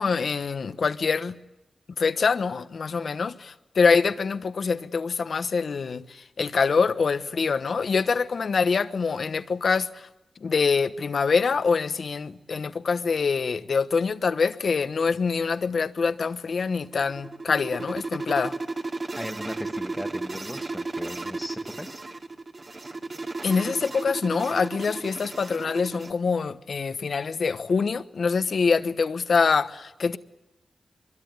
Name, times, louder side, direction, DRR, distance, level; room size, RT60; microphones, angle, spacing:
voice 1, 0.0-1.3 2.0-10.1 10.4-18.5 23.4-30.2, left 5 dB, 65° left, 1.0 m, -25 dB
sound 1, 16.7-26.1, right 3 dB, 40° right, 2.3 m, -34 dB
voice 2, 19.2-22.0, equal, 5° left, 1.6 m, -37 dB
23.5 x 23.0 x 9.4 m
cardioid pair, 75°, 0 cm